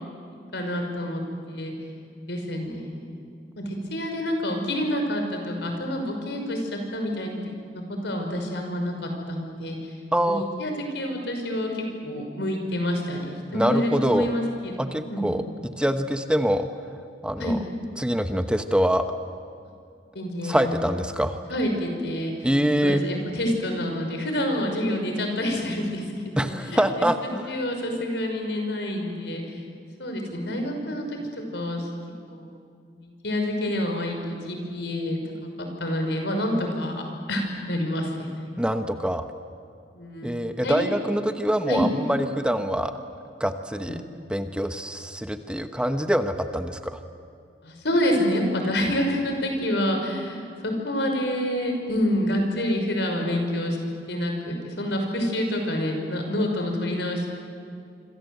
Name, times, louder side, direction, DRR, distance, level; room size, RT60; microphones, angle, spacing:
voice 1, 0.5-1.2 1.5-1.7 2.3-7.3 7.7-9.9 10.3-15.5 17.4-17.6 20.1-20.7 21.5-22.5 22.8-27.1 27.5-29.6 30.0-31.9 32.3-32.5 32.9-35.2 35.6-37.0 37.3-38.6 39.9-40.9 41.3-41.8 43.9-44.0 47.6-53.8 54.1-57.3, left 1 dB, 75° left, 3 dB, 5.8 m, -28 dB
voice 2, 10.1-10.4 13.5-14.3 14.8-16.7 17.2-17.6 18.0-19.1 20.4-21.4 22.4-23.0 26.4-27.4 38.6-39.2 40.2-42.9 43.4-44.0 44.3-47.0, equal, 5° right, 7 dB, 1.0 m, -24 dB
26.5 x 26.0 x 8.0 m, 2.4 s
head